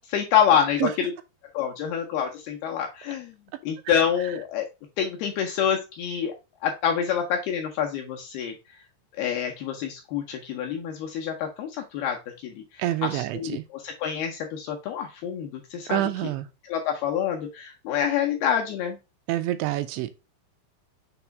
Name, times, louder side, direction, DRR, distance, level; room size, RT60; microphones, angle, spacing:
voice 1, 0.1-1.1 1.5-3.3 3.6-4.7 5.0-6.3 6.6-8.5 9.2-12.2 12.4-16.0 16.7-19.0, left 8 dB, 80° left, 2.3 m, -27 dB
voice 2, 12.8-13.6 15.9-16.5 19.3-20.1, right 14 dB, 85° right, 2.8 m, -27 dB
7.0 x 3.0 x 4.5 m
omnidirectional pair, 5.2 m